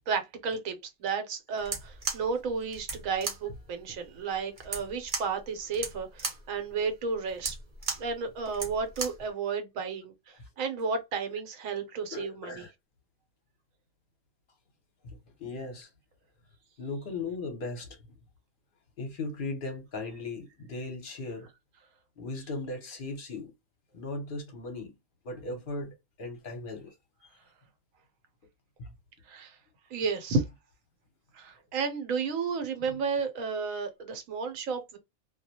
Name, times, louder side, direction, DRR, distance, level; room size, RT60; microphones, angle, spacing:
voice 1, 0.1-7.6 8.0-12.7 29.3-29.6 29.9-30.4 31.3-35.0, right 5 dB, 85° right, 1.1 m, -32 dB
sound 1, 1.6-9.3, right 4 dB, 45° right, 0.8 m, -37 dB
voice 2, 12.1-12.7 15.0-15.9 16.8-18.1 19.0-21.5 22.2-23.5 23.9-25.0 25.2-27.0 27.2-27.3 28.8-28.9 32.9-33.0, left 3 dB, 50° left, 0.7 m, -38 dB
2.3 x 2.1 x 2.7 m
omnidirectional pair, 1.3 m